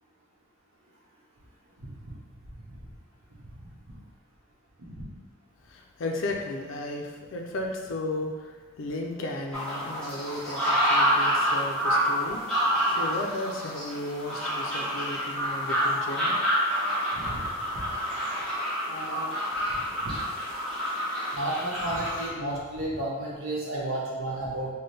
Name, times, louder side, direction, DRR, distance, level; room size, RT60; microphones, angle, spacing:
voice 1, 5.6-16.4, left 1 dB, 70° left, 1 dB, 0.4 m, -35 dB
sound 1, 9.5-22.3, equal, 5° left, 1.0 m, -28 dB
voice 2, 18.9-19.3 20.0-20.1 21.3-24.7, right 1 dB, 85° right, -4 dB, 0.9 m, -32 dB
4.2 x 2.2 x 3.2 m, 1.4 s
head